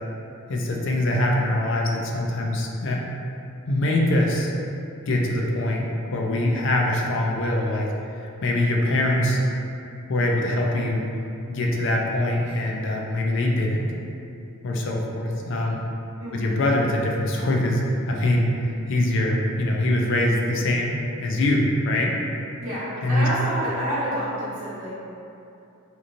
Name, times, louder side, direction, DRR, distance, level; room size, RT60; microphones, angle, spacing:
voice 1, 0.5-3.0 3.7-4.5 5.1-7.9 8.2-9.4 10.1-11.0 11.5-13.9 14.6-15.8 16.3-18.5 18.9-22.1 23.0-23.3, left 1 dB, 55° left, -1 dB, 0.4 m, -23 dB
voice 2, 22.6-24.9, equal, 65° right, -11 dB, 1.1 m, -28 dB
3.0 x 2.5 x 2.5 m, 2.7 s
head